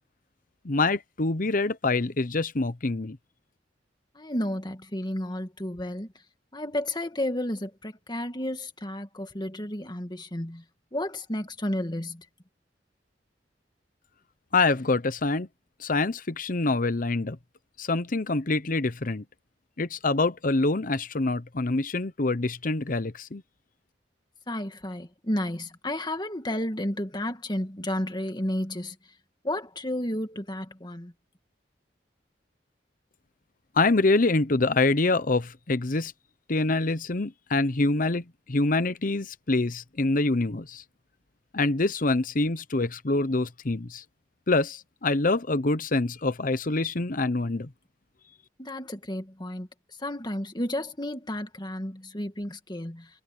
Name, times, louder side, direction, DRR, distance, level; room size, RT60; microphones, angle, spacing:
voice 1, 0.6-3.2 14.5-15.5 15.8-17.4 17.8-19.2 19.8-23.4 33.8-36.1 36.5-40.8 41.5-44.0 44.5-47.7, left 3 dB, 50° left, 0.9 m, -25 dB
voice 2, 4.2-6.1 6.5-10.6 10.9-12.2 24.5-29.0 29.4-31.1 48.6-49.7 50.0-53.1, left 1 dB, 25° left, 2.1 m, -32 dB
head